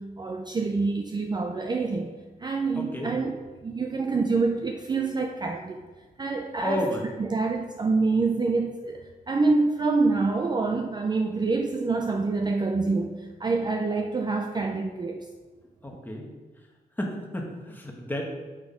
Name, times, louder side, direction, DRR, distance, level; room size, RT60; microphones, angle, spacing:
voice 1, 0.0-2.1 2.4-3.4 3.6-5.9 6.2-6.9 7.2-15.2, right 3 dB, 25° right, 3 dB, 0.4 m, -26 dB
voice 2, 2.8-3.1 6.6-7.2 15.8-16.3 17.0-18.2, left 1 dB, 10° left, 0 dB, 1.2 m, -31 dB
7.3 x 6.3 x 4.9 m, 1.3 s
wide cardioid pair, 175°, 16 cm